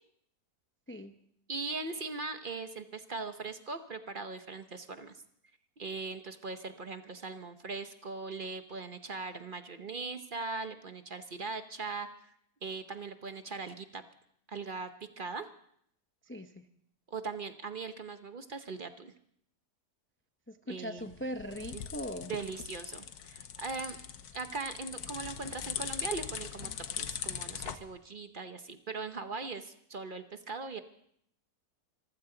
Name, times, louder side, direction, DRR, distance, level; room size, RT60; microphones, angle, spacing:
voice 1, 1.5-5.2 5.8-12.3 12.6-14.0 14.5-14.9 15.2-15.5 17.1-19.1 20.7-21.1 21.7-21.8 22.3-24.0 24.3-26.7 27.0-30.8, right 4 dB, 40° right, 9 dB, 0.9 m, -40 dB
voice 2, 16.3-16.6 20.5-22.3, equal, 20° left, 7 dB, 0.3 m, -40 dB
sound 1, 21.0-27.8, left 8 dB, 85° left, 1.4 m, -40 dB
25.0 x 15.0 x 3.9 m, 0.69 s
omnidirectional pair, 1.6 m